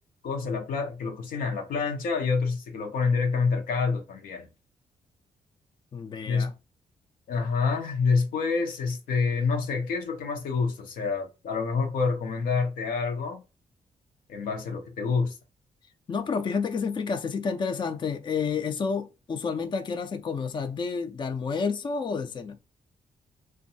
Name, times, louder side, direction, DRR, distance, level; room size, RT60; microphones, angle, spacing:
voice 1, 0.2-4.5 6.3-6.5 7.3-13.4 14.3-15.4, left 4 dB, 85° left, 0.7 m, -27 dB
voice 2, 5.9-6.5 16.1-22.6, left 5 dB, 35° left, 0.4 m, -30 dB
2.6 x 2.2 x 2.7 m
cardioid pair, 80°, 14 cm